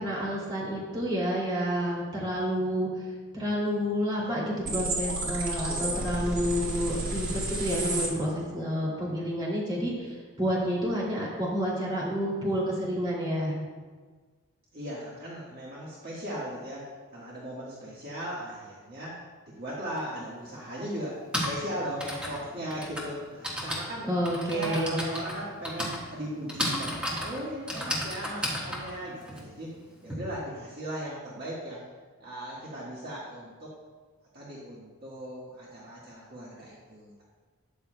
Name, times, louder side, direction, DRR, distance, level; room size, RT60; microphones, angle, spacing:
voice 1, 0.0-2.9 3.3-13.6 24.0-25.0, equal, 20° right, -5 dB, 2.5 m, -29 dB
sound 1, 4.6-8.1, right 2 dB, 60° right, 2.3 m, -31 dB
voice 2, 5.7-6.1 14.7-24.1 24.5-29.8 30.0-31.9 32.2-33.7 34.3-37.2, equal, 45° right, -6 dB, 1.5 m, -38 dB
Typing, 20.0-20.1 21.0-30.1, equal, 5° right, 1.4 m, -34 dB
12.5 x 9.4 x 2.2 m, 1.5 s
head